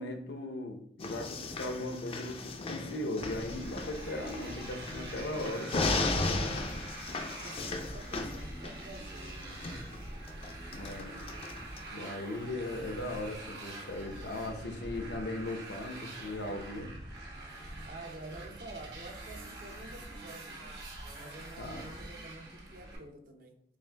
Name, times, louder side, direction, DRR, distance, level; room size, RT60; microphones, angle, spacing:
voice 1, 0.0-5.7 10.7-11.2 11.9-16.9 21.6-21.9, left 1 dB, 80° left, 0.6 m, -38 dB
sound 1, 1.0-11.8, left 3 dB, 35° left, 0.4 m, -36 dB
Motorcycle, 3.2-23.0, right 1 dB, 70° right, 1.1 m, -45 dB
voice 2, 6.3-7.0 7.4-10.0 17.8-20.8 21.1-23.6, right 2 dB, 50° right, 0.6 m, -49 dB
7.2 x 2.4 x 2.2 m
head